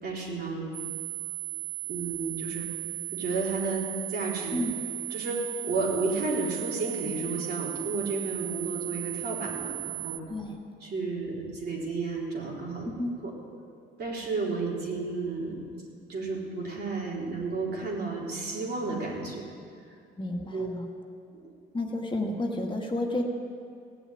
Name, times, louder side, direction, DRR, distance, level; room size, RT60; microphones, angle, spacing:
voice 1, 0.0-0.7 1.9-2.7 3.1-4.6 5.1-10.2 10.8-12.9 13.2-13.3 14.0-15.6 16.1-19.4 20.5-20.7 21.3-21.5, right 3 dB, 55° right, -3 dB, 4.0 m, -32 dB
sound 1, 0.7-10.2, right 18 dB, 20° right, 1.8 m, -36 dB
voice 2, 12.8-13.2 20.2-20.9 21.7-23.2, left 1 dB, 25° left, 1 dB, 1.7 m, -31 dB
16.5 x 7.1 x 9.9 m, 2.3 s
cardioid pair, 90°, 20 cm